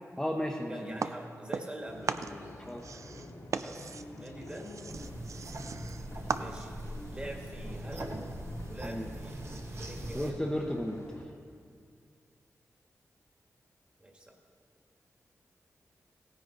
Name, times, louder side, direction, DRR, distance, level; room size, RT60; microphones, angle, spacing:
voice 1, 0.2-1.0 2.7-2.8 8.8-9.1 10.1-11.0, equal, 5° left, -1 dB, 1.0 m, -33 dB
voice 2, 0.7-2.2 3.5-4.7 6.3-6.7 7.1-8.3 8.6-9.4 9.7-10.5 14.0-14.4, right 1 dB, 20° right, 1 dB, 1.9 m, -44 dB
sound 1, 1.0-1.8 2.1-6.9, right 5 dB, 70° right, 0.4 m, -38 dB
sound 2, 1.8-11.3, left 1 dB, 65° left, 1.7 m, -48 dB
sound 3, 4.9-10.3, right 1 dB, 50° right, 1.2 m, -41 dB
16.5 x 9.6 x 4.1 m, 2.2 s
cardioid pair, 70°, 6 cm